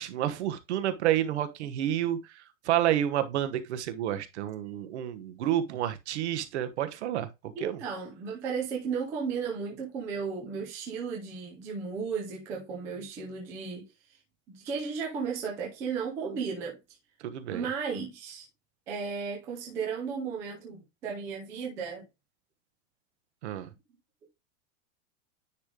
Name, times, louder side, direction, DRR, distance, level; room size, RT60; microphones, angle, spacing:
voice 1, 0.0-2.2 2.6-7.3 7.6-7.8 17.2-17.6 23.4-23.7, right 11 dB, 60° right, 1.2 m, -29 dB
voice 2, 7.6-13.9 14.5-16.8 17.5-18.5 18.9-22.0, right 5 dB, 5° right, 0.4 m, -34 dB
9.7 x 3.2 x 3.7 m
supercardioid pair, 180°, 39 cm